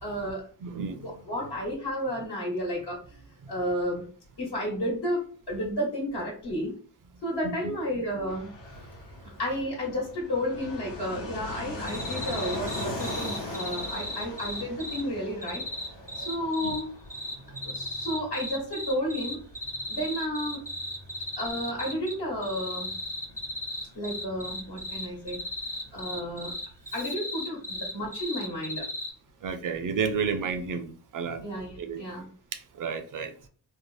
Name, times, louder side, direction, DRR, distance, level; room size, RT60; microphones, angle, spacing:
voice 1, 0.0-0.4 1.0-3.2 3.5-4.0 4.4-6.7 7.2-8.5 9.4-15.6 16.1-16.9 17.6-19.4 19.9-20.6 21.4-22.9 23.9-25.4 25.9-26.5 26.9-28.9 31.4-32.3, equal, 60° left, 1.1 m, -32 dB
voice 2, 0.6-1.1 7.6-7.8 16.2-16.3 16.6-16.7 17.5-17.6 29.4-31.4 31.8-32.2 32.5-33.5, right 6 dB, 50° right, 0.5 m, -32 dB
Fixed-wing aircraft airplane, 8.3-26.6, left 2 dB, 85° left, 0.9 m, -41 dB
sound 1, 11.9-15.0 15.4-16.8 17.1-22.1 22.4-29.1, left 1 dB, 5° left, 0.5 m, -35 dB
2.7 x 2.0 x 3.1 m
cardioid pair, 60°, 43 cm